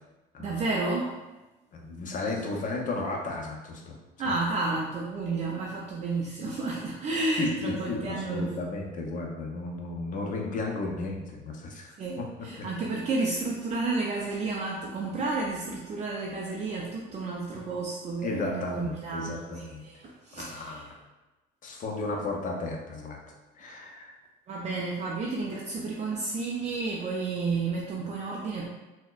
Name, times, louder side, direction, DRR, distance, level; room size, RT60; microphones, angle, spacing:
voice 1, 0.4-1.1 4.2-8.5 12.0-20.9 23.6-23.7 24.5-28.7, right 3 dB, 40° right, -2 dB, 0.4 m, -31 dB
voice 2, 1.7-4.0 4.2-4.3 7.4-12.3 12.6-12.7 18.2-19.8 20.3-21.0 21.6-23.2 23.6-24.2, left 2 dB, 45° left, 1 dB, 0.6 m, -34 dB
4.1 x 2.1 x 2.4 m, 1.1 s
cardioid pair, 115°, 19 cm